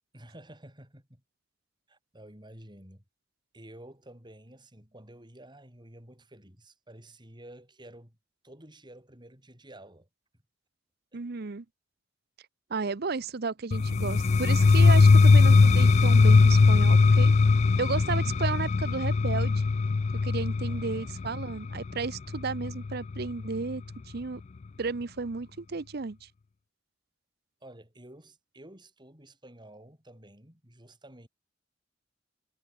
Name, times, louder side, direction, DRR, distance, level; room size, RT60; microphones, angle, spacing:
voice 1, 0.1-1.2 1.9-3.0 3.5-8.2 8.4-10.1 11.1-11.2 20.7-21.2 27.6-31.3, right 1 dB, 25° right, 7.6 m, -51 dB
voice 2, 11.1-11.6 12.7-17.4 17.8-19.7 20.2-23.8 24.1-24.4 24.8-26.3, right 4 dB, 60° right, 0.7 m, -33 dB
sound 1, 13.7-23.5, left 4 dB, 35° left, 0.3 m, -20 dB
head